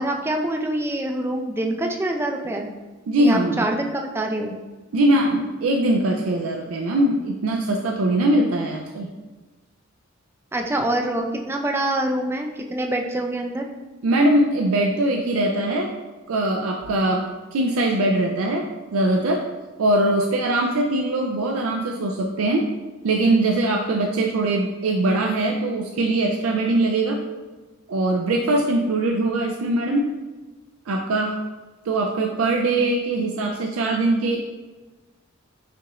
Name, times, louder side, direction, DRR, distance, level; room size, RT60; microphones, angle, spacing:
voice 1, 0.0-2.7 3.2-4.5 10.5-13.7, right 1 dB, 10° right, 3 dB, 0.3 m, -25 dB
voice 2, 3.1-3.7 4.9-9.1 14.0-15.9 16.3-19.5 19.8-22.7 23.0-27.2 27.9-30.1 30.9-31.4 31.9-34.4, right 1 dB, 85° right, 1 dB, 0.4 m, -21 dB
5.7 x 2.4 x 3.0 m, 1.2 s
head